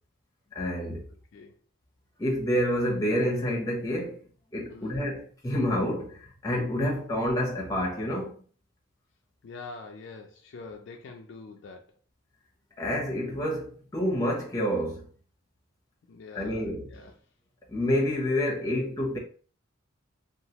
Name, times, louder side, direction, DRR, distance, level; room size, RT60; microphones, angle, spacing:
voice 1, 0.5-1.0 2.2-4.2 4.5-8.3 12.8-15.0 16.3-16.9 17.7-19.2, equal, 15° left, 0.7 m, -28 dB
voice 2, 4.7-5.0 9.4-11.9 16.1-17.2, left 4 dB, 60° left, 0.3 m, -45 dB
2.9 x 2.4 x 2.8 m
head